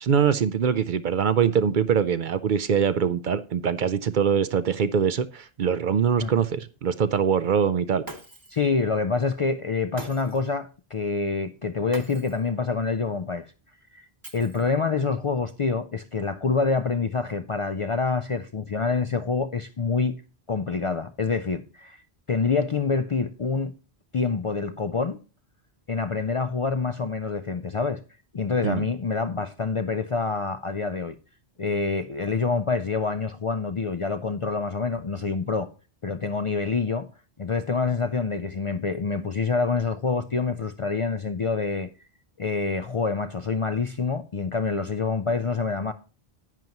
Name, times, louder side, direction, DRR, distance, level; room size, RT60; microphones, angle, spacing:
voice 1, 0.0-8.0 28.6-28.9, right 7 dB, 60° right, 0.6 m, -23 dB
Shatter, 8.0-8.7 10.0-10.5 11.9-12.5 14.2-14.9, right 2 dB, 20° right, 1.1 m, -42 dB
voice 2, 8.5-13.5 13.9-14.1 14.3-20.2 20.5-22.0 22.3-23.7 24.1-25.2 25.9-28.0 28.3-31.2 31.6-35.7 36.0-37.1 37.4-41.9 42.4-45.9, left 4 dB, 45° left, 0.4 m, -26 dB
10.5 x 9.3 x 2.9 m
omnidirectional pair, 1.0 m